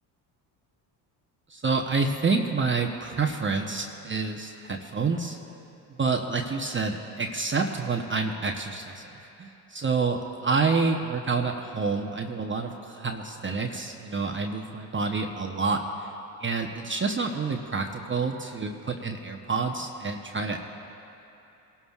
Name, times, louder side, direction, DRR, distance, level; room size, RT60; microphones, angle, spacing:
voice 1, 1.5-5.4 6.0-9.1 9.4-16.1 16.4-20.6, right 4 dB, 25° right, 3 dB, 0.9 m, -28 dB
23.5 x 12.5 x 2.4 m, 2.9 s
supercardioid pair, 65°, 47 cm